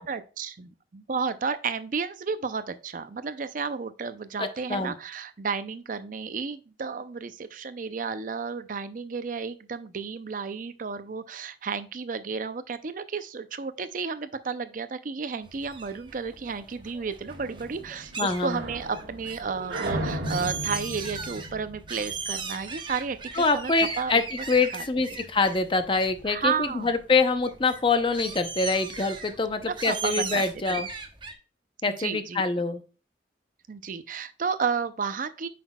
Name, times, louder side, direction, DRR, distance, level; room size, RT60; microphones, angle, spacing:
voice 1, 0.0-24.2 24.7-24.8 25.1-25.2 26.3-26.9 29.7-30.4 30.7-30.9 31.9-32.4 33.7-35.5, right 5 dB, 50° right, 12 dB, 0.5 m, -32 dB
voice 2, 4.4-4.9 18.2-18.6 23.4-30.9 31.8-32.8, left 4 dB, 30° left, 9 dB, 0.7 m, -25 dB
sound 1, 15.4-31.3, right 5 dB, 25° right, 0.9 m, -39 dB
sound 2, 17.3-22.7, right 1 dB, 75° right, 1.5 m, -35 dB
8.3 x 5.9 x 2.3 m, 0.35 s
head